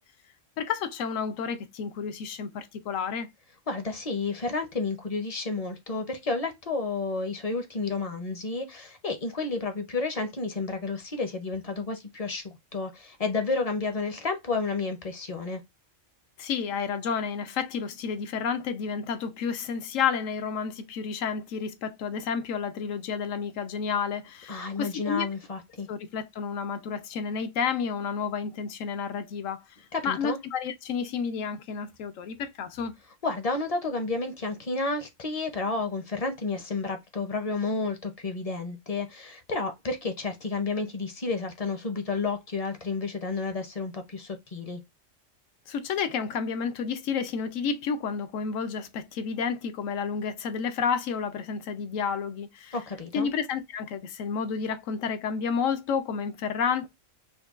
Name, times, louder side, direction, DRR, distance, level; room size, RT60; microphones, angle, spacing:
voice 1, 0.6-3.3 16.4-25.3 25.9-29.6 30.0-32.9 45.7-52.7 53.1-56.9, left 6 dB, 80° left, 1.0 m, -30 dB
voice 2, 3.7-15.6 24.5-25.9 29.9-30.4 33.2-44.8 52.7-53.3, left 3 dB, 40° left, 0.6 m, -31 dB
5.2 x 2.2 x 2.4 m
omnidirectional pair, 1.3 m